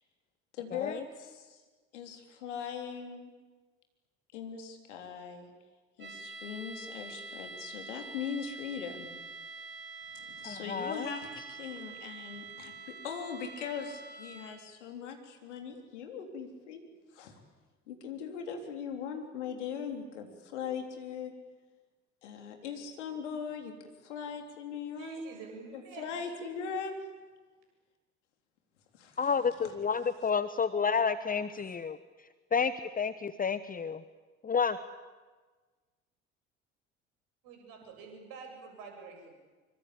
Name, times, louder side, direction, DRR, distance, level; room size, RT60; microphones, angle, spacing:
voice 1, 0.5-1.6 1.9-3.3 4.3-5.5 6.0-9.2 10.1-16.8 17.1-17.3 17.9-21.3 22.2-23.7 24.0-25.2 25.7-27.0 28.9-29.4 29.6-29.7, left 6 dB, 75° left, 5 dB, 3.8 m, -40 dB
sound 1, 6.0-14.7, right 3 dB, 30° right, 5.7 m, -46 dB
voice 2, 10.4-11.1 29.2-32.0 32.5-34.0 34.4-34.8, left 6 dB, 25° left, 14 dB, 1.1 m, -30 dB
voice 3, 25.0-26.3 37.4-39.3, right 3 dB, 60° right, 3 dB, 7.6 m, -47 dB
25.0 x 24.5 x 8.7 m, 1.3 s
figure-of-eight pair, 55°, 36 cm